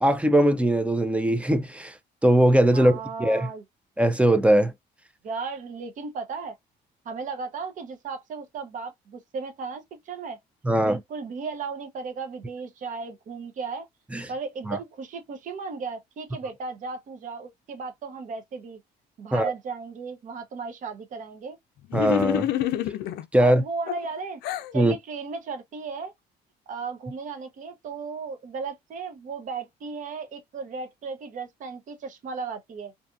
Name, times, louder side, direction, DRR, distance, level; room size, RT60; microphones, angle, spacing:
voice 1, 0.0-1.9 2.2-3.5 4.0-4.7 10.6-11.0 14.1-14.2 14.7-14.8 19.3-19.5 21.9-22.5 23.3-23.6 24.7-24.9, right 1 dB, 5° right, 0.4 m, -20 dB
voice 2, 2.7-3.6 5.2-6.5 7.0-10.4 10.8-13.9 14.3-18.8 19.2-21.6 23.4-24.4 24.7-26.1 26.7-32.9, right 5 dB, 50° right, 0.7 m, -35 dB
sound 1, 21.9-23.2 23.9-24.7, left 13 dB, 75° left, 0.4 m, -27 dB
2.7 x 2.4 x 2.3 m
cardioid pair, 110°, 17 cm